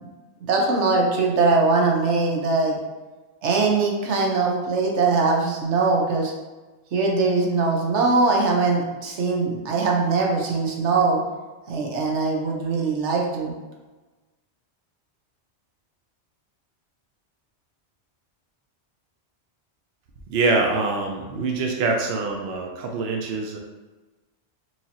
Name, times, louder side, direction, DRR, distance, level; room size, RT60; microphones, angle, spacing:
voice 1, 0.5-2.8 3.4-6.3 6.9-11.2 11.7-13.5, right 3 dB, 85° right, -1 dB, 1.1 m, -21 dB
voice 2, 20.3-23.6, right 3 dB, 70° right, 1 dB, 0.8 m, -24 dB
4.6 x 2.8 x 2.8 m, 1.2 s
omnidirectional pair, 1.2 m